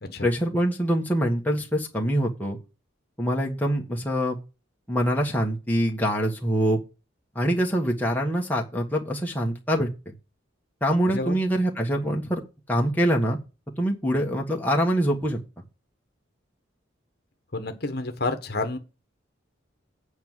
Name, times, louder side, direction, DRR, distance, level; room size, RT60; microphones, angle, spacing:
voice 1, 0.2-2.6 3.2-4.4 4.9-6.8 7.3-9.9 10.8-12.4 12.7-13.4 13.8-15.4, equal, 10° left, 1.5 m, -24 dB
voice 2, 17.5-18.8, left 2 dB, 50° left, 1.2 m, -29 dB
8.8 x 4.8 x 7.4 m
head